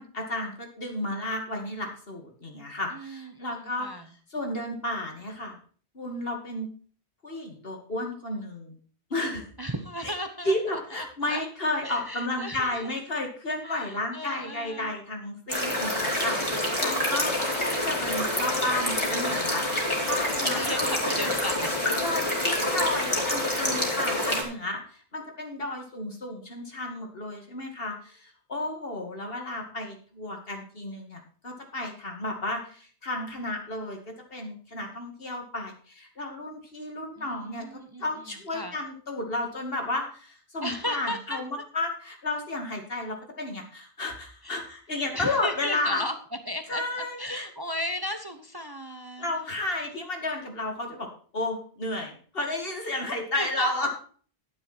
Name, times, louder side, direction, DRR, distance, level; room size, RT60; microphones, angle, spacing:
voice 1, 0.0-4.0 4.3-5.6 5.9-6.7 7.2-8.8 9.1-9.5 10.0-10.1 10.4-19.6 20.1-21.4 22.0-34.0 34.3-37.6 38.0-46.0 46.7-47.5 49.2-53.9, left 2 dB, 65° left, 3 dB, 2.5 m, -32 dB
voice 2, 2.9-4.0 9.6-10.5 10.9-11.4 11.8-12.9 13.6-14.9 20.5-21.7 22.5-22.6 37.2-38.0 38.5-38.8 40.6-41.4 44.4-44.5 45.1-46.1 46.5-46.8 47.2-49.3 49.6-49.9 53.3-53.9, equal, 25° right, 7 dB, 0.8 m, -35 dB
sound 1, 15.5-24.4, left 1 dB, 25° left, 3.0 m, -27 dB
11.0 x 9.8 x 4.3 m, 0.43 s
omnidirectional pair, 1.1 m